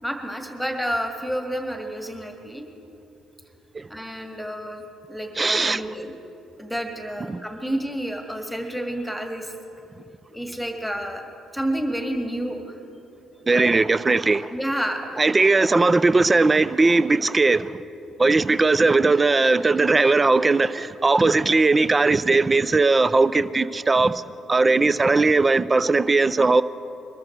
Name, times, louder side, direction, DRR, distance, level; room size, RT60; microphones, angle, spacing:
voice 1, 0.0-2.7 3.9-6.1 6.6-9.5 10.3-11.2 11.5-12.8 13.5-13.8 14.5-15.2 15.5-15.7 19.0-19.1 19.4-19.5 20.8-20.9, equal, ahead, 1.9 m, -30 dB
voice 2, 5.4-5.8 7.3-7.4 13.5-14.5 15.2-17.8 18.2-24.2 24.5-26.6, right 3 dB, 30° right, 0.5 m, -19 dB
22.0 x 13.5 x 4.6 m
hypercardioid pair, 45°, 0 cm